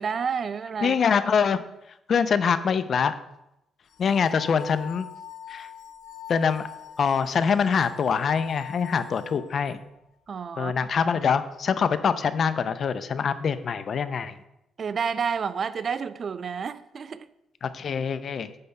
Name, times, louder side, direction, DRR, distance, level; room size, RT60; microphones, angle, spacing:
voice 1, 0.0-1.0 10.3-10.7 14.8-17.3, right 6 dB, 50° right, 14 dB, 0.4 m, -30 dB
voice 2, 0.8-1.6 2.1-3.1 4.0-5.1 5.5-5.7 6.3-6.6 7.0-9.8 10.6-14.3 17.6-18.5, left 6 dB, 55° left, 13 dB, 0.6 m, -24 dB
sound 1, 3.9-9.7, left 9 dB, 75° left, 1.7 m, -43 dB
9.5 x 3.5 x 6.8 m, 0.87 s
cardioid pair, 90°, 0 cm